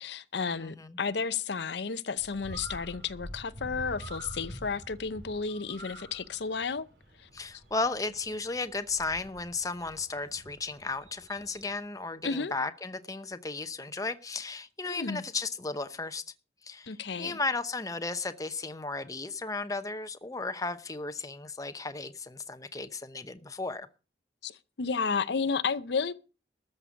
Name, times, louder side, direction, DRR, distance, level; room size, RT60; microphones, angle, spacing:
voice 1, 0.0-6.9 7.2-7.3 12.2-12.5 14.8-15.2 16.9-17.4 24.4-26.1, left 5 dB, 70° left, 0.7 m, -32 dB
voice 2, 0.6-1.0 7.3-16.2 16.6-23.9, left 3 dB, 20° left, 0.8 m, -35 dB
Bird, 2.2-11.7, right 1 dB, 75° right, 4.7 m, -47 dB
13.5 x 6.8 x 8.3 m
head